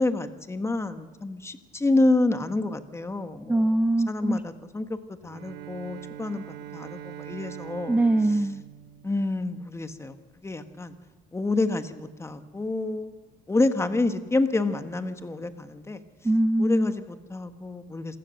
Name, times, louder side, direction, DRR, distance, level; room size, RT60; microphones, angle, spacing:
voice 1, 0.0-3.7 4.1-6.4 6.7-8.0 9.0-10.1 10.4-10.9 11.3-13.1 13.5-16.0 16.6-18.2, left 2 dB, 15° left, 9 dB, 1.6 m, -28 dB
voice 2, 3.5-4.4 7.9-8.6 16.2-16.9, right 1 dB, 10° right, 12 dB, 0.6 m, -23 dB
Bowed string instrument, 5.2-9.8, right 12 dB, 80° right, 1.0 m, -42 dB
27.0 x 16.0 x 6.6 m, 1.3 s
cardioid pair, 110°, 17 cm